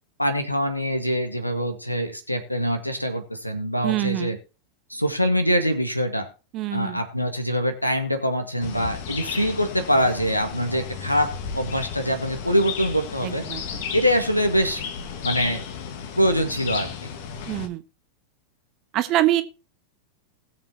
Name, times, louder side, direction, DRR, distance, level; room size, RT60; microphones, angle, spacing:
voice 1, 0.2-4.4 4.9-6.3 6.7-13.4 13.9-14.9 15.2-15.6 16.2-17.1, equal, 90° left, 1.8 m, -24 dB
voice 2, 3.8-4.4 6.5-7.0 13.2-13.8 17.5-17.8 18.9-19.4, right 14 dB, 35° right, 1.2 m, -25 dB
sound 1, 8.6-17.7, left 7 dB, 50° left, 1.6 m, -34 dB
20.0 x 6.9 x 3.0 m
figure-of-eight pair, 90°, 0 cm